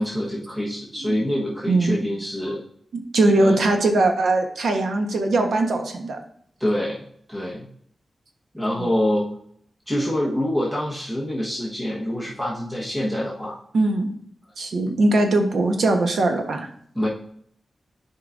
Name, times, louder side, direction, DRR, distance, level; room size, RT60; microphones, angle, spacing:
voice 1, 0.0-2.6 3.4-3.6 6.6-7.0 7.3-7.7 8.5-9.3 9.9-13.6 16.9-17.1, left 1 dB, 5° right, -5 dB, 1.2 m, -25 dB
voice 2, 2.9-6.2 13.7-14.1 14.6-16.7, right 2 dB, 90° right, 4 dB, 1.1 m, -20 dB
10.5 x 4.8 x 2.6 m, 0.64 s
wide cardioid pair, 150°, 0 cm